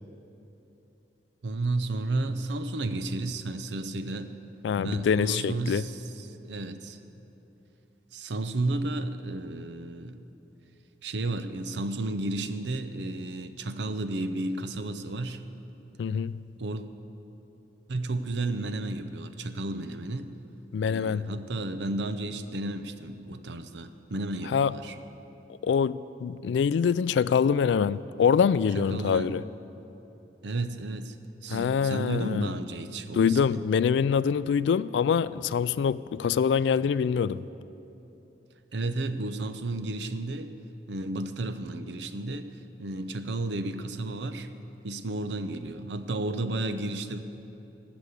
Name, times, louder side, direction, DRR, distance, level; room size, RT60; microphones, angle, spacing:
voice 1, 1.4-4.3 4.8-7.0 8.1-10.2 11.0-15.5 16.6-16.8 17.9-20.4 20.8-25.0 28.7-29.3 30.4-31.2 31.4-33.6 38.7-40.6 40.9-42.5 42.8-44.5 44.8-47.2, right 2 dB, 80° right, 0.7 m, -32 dB
voice 2, 4.6-5.8 16.0-16.4 20.7-21.3 24.5-24.7 25.6-29.4 31.5-32.5 33.1-37.4, left 6 dB, 80° left, 0.3 m, -25 dB
14.5 x 6.1 x 8.4 m
head